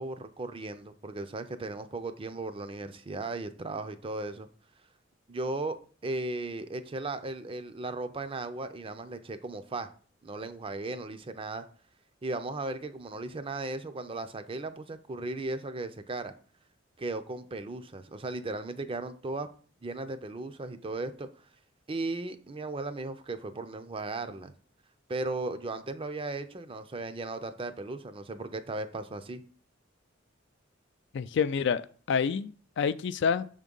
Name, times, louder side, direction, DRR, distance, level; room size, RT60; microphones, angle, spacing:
voice 1, 0.0-4.5 5.3-9.9 10.2-11.6 12.2-16.3 17.0-19.5 19.8-21.3 21.9-24.5 25.1-29.4, right 2 dB, 30° right, 10 dB, 0.5 m, -36 dB
voice 2, 31.1-31.8 32.1-33.5, left 6 dB, 65° left, 14 dB, 0.4 m, -28 dB
6.4 x 3.6 x 5.3 m, 0.42 s
head